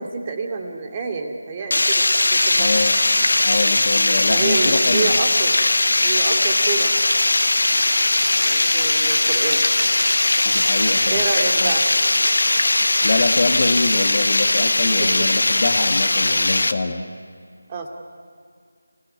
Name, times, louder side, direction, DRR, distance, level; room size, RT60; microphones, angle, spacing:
voice 1, 0.0-2.1 2.3-2.9 4.3-5.6 6.0-6.9 8.1-9.7 11.1-11.8 15.0-15.4 17.7-17.9, right 4 dB, 25° right, 3 dB, 2.5 m, -28 dB
Water, 1.7-16.7, left 2 dB, 65° left, 1.5 m, -19 dB
voice 2, 2.5-3.0 3.4-5.2 10.4-11.2 11.6-11.7 13.0-17.0, left 3 dB, 40° left, 3 dB, 1.5 m, -24 dB
29.5 x 18.0 x 9.8 m, 2.2 s
figure-of-eight pair, 160°, 0 cm